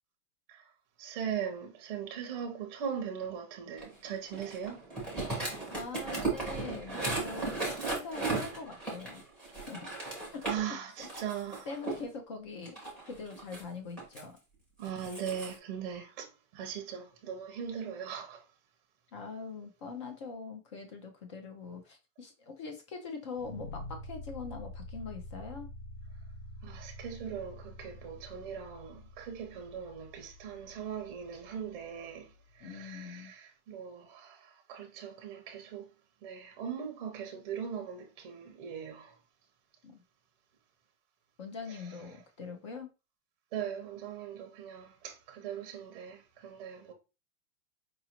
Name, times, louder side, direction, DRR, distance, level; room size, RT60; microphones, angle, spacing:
voice 1, 1.0-4.9 9.5-9.6 10.4-11.7 14.8-18.5 26.6-35.9 36.2-39.2 41.7-42.2 43.5-46.9, right 8 dB, 35° right, 0.6 m, -40 dB
sound 1, 3.8-10.6 11.0-12.0 12.6-14.2 14.8-15.5, right 3 dB, ahead, 0.8 m, -36 dB
voice 2, 5.7-7.5 7.9-9.2 9.7-9.9 10.3-10.8 11.7-12.8 13.1-14.3 19.1-25.7 32.6-33.3 39.8-40.0 41.4-42.9, left 4 dB, 25° left, 0.4 m, -43 dB
sound 2, 23.3-32.4, left 1 dB, 85° left, 1.0 m, -47 dB
5.0 x 2.5 x 2.8 m
supercardioid pair, 170°, 40 cm